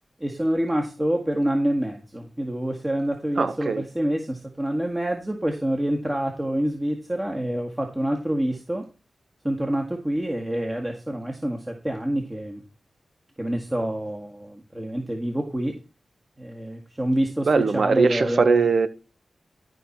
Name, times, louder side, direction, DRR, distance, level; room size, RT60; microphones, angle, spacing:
voice 1, 0.2-8.8 9.4-12.6 13.4-15.7 16.4-18.7, right 1 dB, 20° right, 1.9 m, -27 dB
voice 2, 3.4-3.8 17.5-18.9, right 4 dB, 65° right, 1.2 m, -20 dB
12.5 x 5.9 x 4.4 m
cardioid pair, 55°, 0 cm